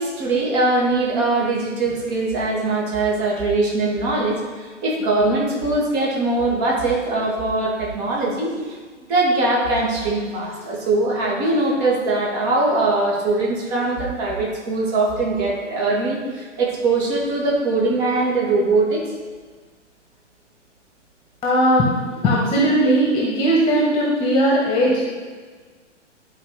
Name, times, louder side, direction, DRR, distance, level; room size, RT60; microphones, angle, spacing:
voice 1, 0.0-8.8 9.1-19.0, right 2 dB, 30° right, -3 dB, 2.4 m, -21 dB
voice 2, 21.4-21.9 22.2-25.0, equal, 15° left, -3 dB, 1.6 m, -18 dB
11.5 x 4.7 x 5.0 m, 1.5 s
figure-of-eight pair, 115°, 37 cm